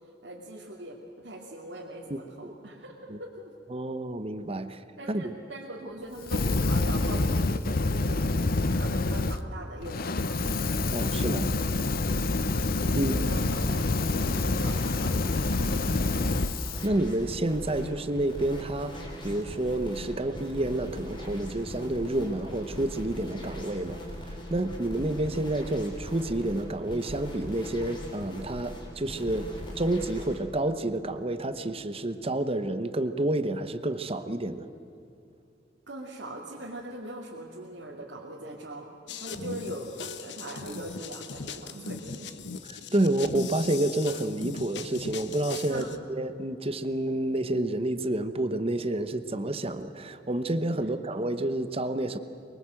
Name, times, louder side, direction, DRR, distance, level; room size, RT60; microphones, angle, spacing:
voice 1, 0.2-3.5 5.0-10.6 12.1-12.4 13.0-16.2 35.9-38.9 39.1-42.4 45.7-45.9 50.8-50.9, right 1 dB, 70° right, -4 dB, 2.7 m, -42 dB
voice 2, 2.1-2.5 3.1-3.2 3.7-4.8 5.1-5.3 10.9-11.5 12.8-13.4 16.8-34.7 42.7-52.2, right 1 dB, 35° right, 10 dB, 1.0 m, -29 dB
Fire, 6.2-9.4 9.8-16.8, left 2 dB, 55° left, 0.8 m, -27 dB
sound 1, 12.9-30.4, left 1 dB, 25° left, 4.5 m, -40 dB
sound 2, 39.1-46.0, left 5 dB, 70° left, 1.1 m, -39 dB
24.0 x 23.0 x 7.8 m, 2.6 s
head